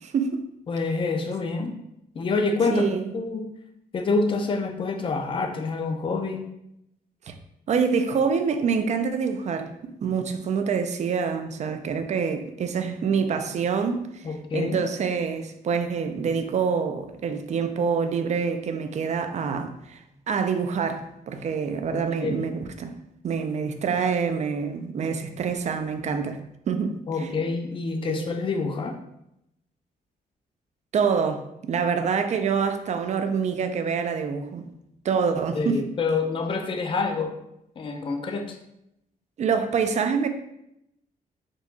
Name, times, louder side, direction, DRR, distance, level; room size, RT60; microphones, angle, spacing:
voice 1, 0.0-0.5 2.7-3.0 7.3-7.4 7.7-9.7 10.0-20.0 20.3-22.9 23.2-26.4 26.7-27.3 28.0-28.3 30.9-34.7 35.0-35.8 39.4-40.3, right 6 dB, 50° right, 8 dB, 0.4 m, -26 dB
voice 2, 0.7-1.8 2.1-2.8 3.1-3.5 3.9-6.4 14.2-14.8 21.9-22.5 27.1-29.0 35.6-37.4 37.8-38.6, left 3 dB, 35° left, 5 dB, 0.4 m, -27 dB
4.5 x 2.3 x 3.9 m, 0.81 s
wide cardioid pair, 135°, 16 cm